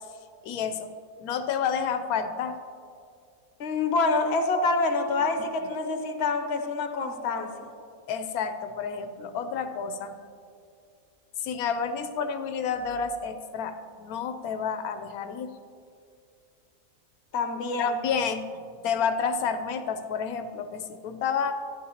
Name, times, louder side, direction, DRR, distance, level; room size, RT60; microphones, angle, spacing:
voice 1, 0.4-0.9 1.2-2.6 8.1-10.2 11.4-15.5 17.8-21.6, left 6 dB, 90° left, 8 dB, 1.1 m, -30 dB
voice 2, 3.6-7.7 17.3-17.9, left 3 dB, 55° left, 6 dB, 1.0 m, -26 dB
14.0 x 10.5 x 2.8 m, 2.4 s
omnidirectional pair, 1.5 m